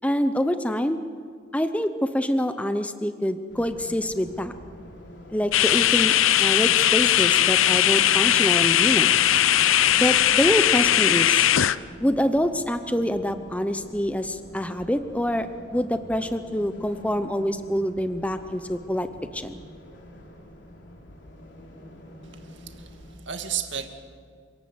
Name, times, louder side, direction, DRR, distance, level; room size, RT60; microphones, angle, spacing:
voice 1, 0.0-1.0 1.5-4.5 5.3-6.1 6.4-9.1 10.0-11.4 12.0-19.1 19.3-19.5, equal, 5° left, 9 dB, 0.7 m, -26 dB
sound 1, 3.5-23.2, left 1 dB, 65° left, 3.4 m, -46 dB
sound 2, 5.5-11.8, left 11 dB, 90° left, 0.6 m, -19 dB
voice 2, 22.4-23.9, right 8 dB, 65° right, 6 dB, 2.1 m, -33 dB
27.5 x 18.0 x 8.0 m, 2.1 s
head